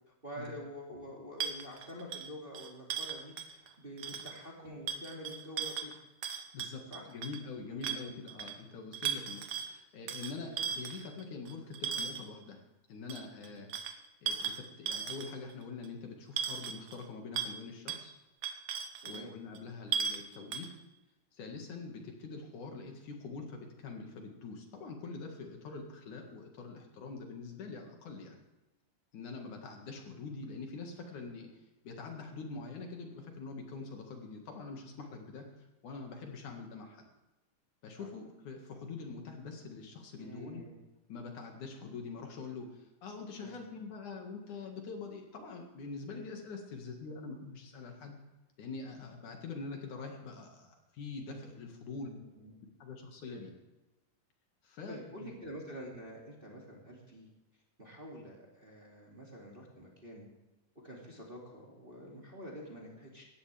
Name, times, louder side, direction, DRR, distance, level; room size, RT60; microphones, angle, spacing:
voice 1, 0.2-6.0 6.9-7.1 7.7-8.2 10.4-10.5 13.5-13.6 19.0-19.3 38.0-38.1 40.2-40.8 43.4-43.6 51.9-52.5 53.3-53.4 54.9-57.3 57.8-60.2 60.8-63.2, equal, 15° right, -2 dB, 2.4 m, -47 dB
sound 1, 1.4-3.7 4.0-4.4 4.9-7.4 7.8-8.6 8.9-9.7 10.1-12.3 13.1-15.5 15.8-15.9 16.4-17.0 17.3-17.6 17.9-18.0 18.4-19.2 19.5-19.6 19.9-20.2 20.5-20.7, right 7 dB, 65° right, 1.4 m, -37 dB
voice 2, 6.5-12.6 12.9-13.7 14.2-18.1 19.0-20.7 21.3-28.4 29.1-31.5 31.8-35.5 35.8-37.1 37.8-40.7 41.1-48.2 48.6-52.1 52.8-53.5 54.6-55.3, left 4 dB, 65° left, 2 dB, 3.2 m, -44 dB
18.5 x 14.5 x 3.5 m, 1.1 s
omnidirectional pair, 3.8 m